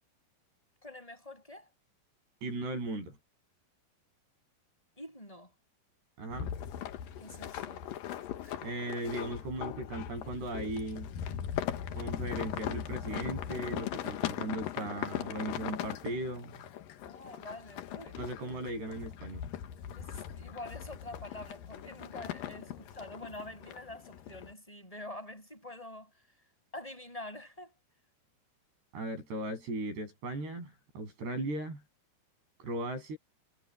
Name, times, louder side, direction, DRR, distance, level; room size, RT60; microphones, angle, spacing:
voice 1, 0.8-1.7 5.0-5.5 7.2-7.8 8.4-8.6 17.0-18.2 19.9-26.1 26.7-27.7, left 1 dB, 10° left, 7.4 m, -46 dB
voice 2, 2.4-3.2 6.2-6.5 8.6-11.1 12.0-16.5 18.2-19.5 28.9-31.8 32.6-33.2, right 1 dB, 75° right, 9.5 m, -37 dB
sound 1, 6.3-24.5, left 10 dB, 65° left, 2.7 m, -40 dB
omnidirectional pair, 4.8 m